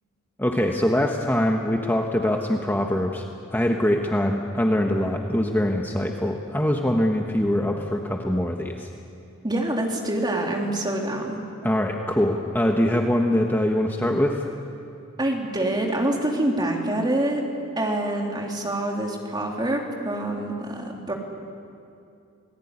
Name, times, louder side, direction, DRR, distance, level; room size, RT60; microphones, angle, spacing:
voice 1, 0.4-3.2 3.5-8.9 11.6-14.5, left 1 dB, 10° left, 2 dB, 1.2 m, -23 dB
voice 2, 9.4-11.4 15.2-17.4 17.8-21.1, right 1 dB, 20° right, 0 dB, 3.4 m, -26 dB
28.0 x 19.0 x 9.8 m, 2.5 s
head